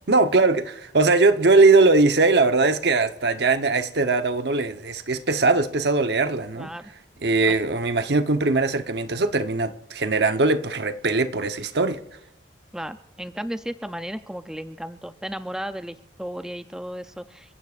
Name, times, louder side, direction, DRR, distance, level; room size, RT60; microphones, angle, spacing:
voice 1, 0.1-6.7 7.2-12.0, right 3 dB, 65° right, 1.0 m, -20 dB
voice 2, 6.6-6.9 7.4-7.6 12.7-17.6, equal, 5° right, 0.5 m, -34 dB
29.0 x 16.0 x 2.5 m
head